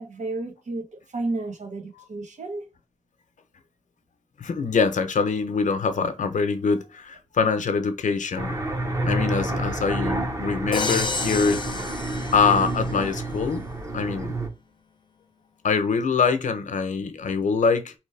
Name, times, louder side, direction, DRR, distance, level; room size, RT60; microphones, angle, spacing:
voice 1, 0.0-2.6, right 2 dB, 75° right, 1.0 m, -32 dB
voice 2, 4.4-8.5 9.0-11.6 12.3-13.6 13.9-14.3 15.6-17.9, left 5 dB, 90° left, 0.8 m, -24 dB
sound 1, 8.4-14.5, right 1 dB, 25° right, 0.8 m, -29 dB
Crash cymbal, 10.7-12.9, left 4 dB, 40° left, 0.5 m, -30 dB
4.5 x 3.1 x 3.3 m
wide cardioid pair, 150°, 13 cm